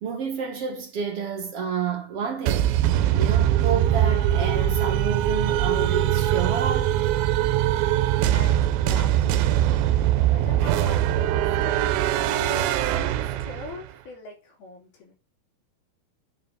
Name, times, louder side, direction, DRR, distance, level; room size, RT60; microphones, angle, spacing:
voice 1, 0.0-2.7 3.2-7.0, right 6 dB, 60° right, 1.6 m, -29 dB
sound 1, 2.5-13.9, right 12 dB, 80° right, 2.4 m, -22 dB
voice 2, 8.3-9.5 10.1-11.8 12.5-15.1, left 3 dB, 80° left, 5.6 m, -42 dB
9.3 x 4.8 x 6.2 m
omnidirectional pair, 4.3 m